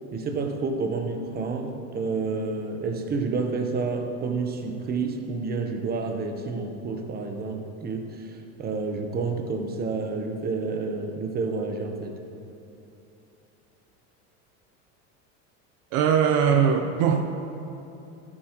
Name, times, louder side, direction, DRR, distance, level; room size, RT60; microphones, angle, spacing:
voice 1, 0.1-8.3 8.6-12.2, right 4 dB, 25° right, 4 dB, 0.9 m, -29 dB
voice 2, 15.9-17.2, right 7 dB, 60° right, 5 dB, 0.7 m, -21 dB
13.0 x 8.6 x 3.0 m, 2.9 s
supercardioid pair, 125°, 34 cm